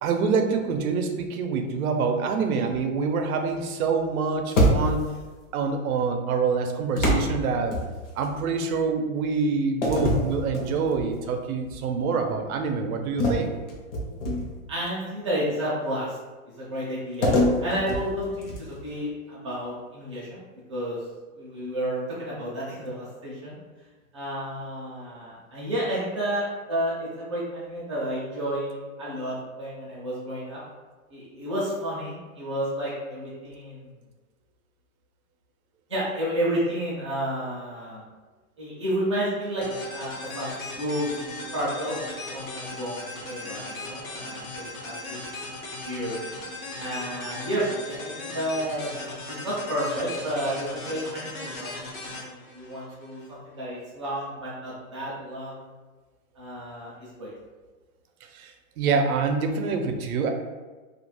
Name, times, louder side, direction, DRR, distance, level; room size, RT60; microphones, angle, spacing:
voice 1, 0.0-5.1 5.5-7.8 8.2-13.5 58.3-60.3, right 5 dB, 85° right, 5 dB, 0.6 m, -26 dB
sound 1, 4.5-5.2 7.0-8.3 9.8-11.1 11.6-11.9 13.2-14.7 17.2-18.9, equal, 60° left, 0.8 m, -25 dB
voice 2, 14.7-16.2 16.6-17.3 17.6-20.4 20.7-21.0 21.3-23.6 24.1-30.6 31.1-33.9 35.9-38.0 38.6-41.2 41.5-45.2 45.8-46.2 46.8-51.7 52.1-55.6 56.4-57.3, equal, 25° right, -8 dB, 0.4 m, -31 dB
sound 2, 39.6-53.3, left 2 dB, 90° left, 0.9 m, -38 dB
2.4 x 2.2 x 3.0 m, 1.3 s
hypercardioid pair, 175°, 42 cm